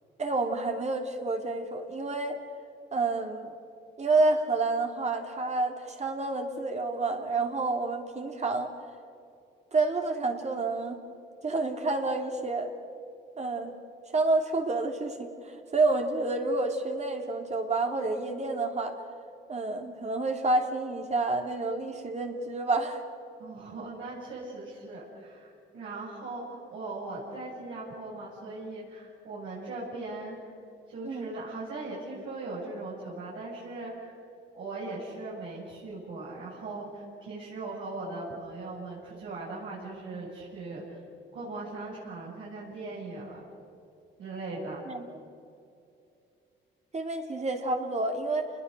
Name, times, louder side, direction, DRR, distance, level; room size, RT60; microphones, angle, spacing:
voice 1, 0.2-2.4 2.9-3.5 4.0-8.7 9.7-11.0 11.4-12.7 13.4-13.7 14.1-15.3 15.7-19.0 19.5-23.0 31.0-31.3 44.9-45.1 46.9-48.5, right 3 dB, 35° right, 3 dB, 3.0 m, -29 dB
voice 2, 23.4-30.4 30.9-34.1 34.5-41.0 41.3-43.4 44.2-44.8, right 2 dB, 75° right, -7 dB, 7.8 m, -39 dB
29.5 x 21.0 x 6.8 m, 2.5 s
cardioid pair, 90°, 20 cm